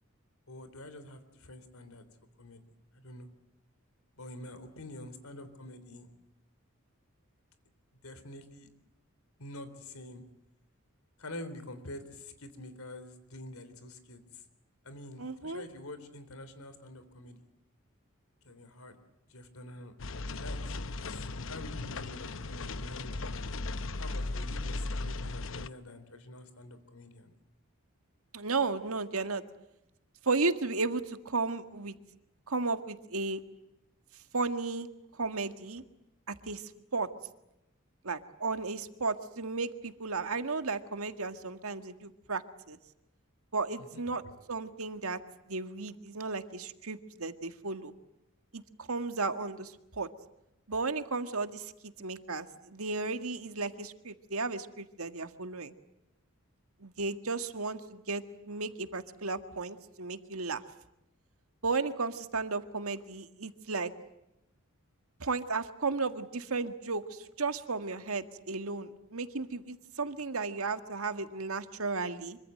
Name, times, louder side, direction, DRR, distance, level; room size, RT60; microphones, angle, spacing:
voice 1, 0.5-2.0 2.4-2.6 2.9-3.3 4.2-6.1 8.0-8.7 9.4-10.2 11.2-14.4 14.8-17.4 18.4-19.0 19.3-20.0 20.3-20.8 21.1-23.5 24.0-27.3 43.9-44.0, left 1 dB, 90° left, 11 dB, 3.6 m, -47 dB
voice 2, 15.2-15.6 28.3-29.4 30.2-31.9 32.5-33.4 34.3-34.9 35.1-35.8 36.3-37.1 38.0-42.8 43.5-44.2 44.5-45.2 45.5-47.9 48.5-50.1 50.7-55.7 56.8-60.6 61.6-63.9 65.2-72.4, right 3 dB, 85° right, 9 dB, 1.8 m, -34 dB
sound 1, 20.0-25.7, left 2 dB, 65° left, 0.9 m, -37 dB
25.5 x 24.5 x 7.8 m, 0.88 s
head